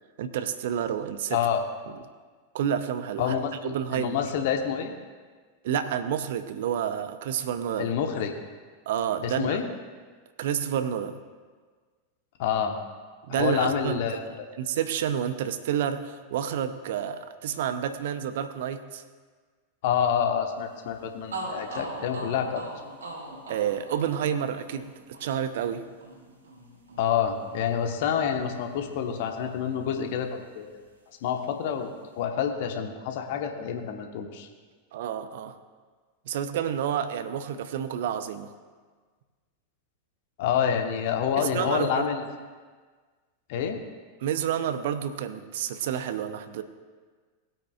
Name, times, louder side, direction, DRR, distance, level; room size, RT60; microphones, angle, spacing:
voice 1, 0.2-1.4 2.5-3.4 3.7-4.2 5.6-7.9 8.9-9.6 10.4-11.2 13.3-19.0 23.5-24.9 25.2-25.8 34.9-35.6 36.3-38.5 41.4-42.1 44.2-46.6, right 9 dB, 55° right, 11 dB, 0.7 m, -29 dB
voice 2, 1.3-1.6 3.2-4.9 7.8-8.3 9.2-9.6 12.4-12.8 13.3-14.5 19.8-22.6 27.0-30.8 31.2-31.9 32.1-34.5 40.4-42.2 43.5-43.8, left 8 dB, 50° left, 4 dB, 1.3 m, -28 dB
sound 1, 20.9-21.0 21.3-29.2 29.4-30.6, right 2 dB, 70° right, 2.7 m, -42 dB
19.5 x 9.0 x 2.4 m, 1.5 s
figure-of-eight pair, 90°, 0 cm